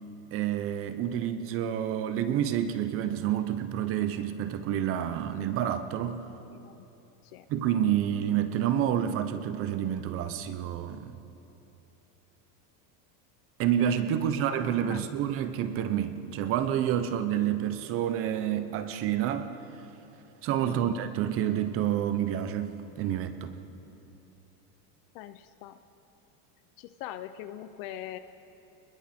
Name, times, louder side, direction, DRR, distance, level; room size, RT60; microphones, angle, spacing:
voice 1, 0.3-6.3 7.5-11.2 13.6-19.5 20.4-23.5, right 10 dB, 30° right, 10 dB, 0.6 m, -29 dB
voice 2, 6.5-6.9 7.2-7.5 14.1-14.3 14.8-15.0 20.6-21.0 25.1-25.8 26.8-28.2, left 12 dB, 40° left, 11 dB, 0.5 m, -42 dB
29.5 x 21.0 x 4.3 m, 3.0 s
supercardioid pair, 170°, 48 cm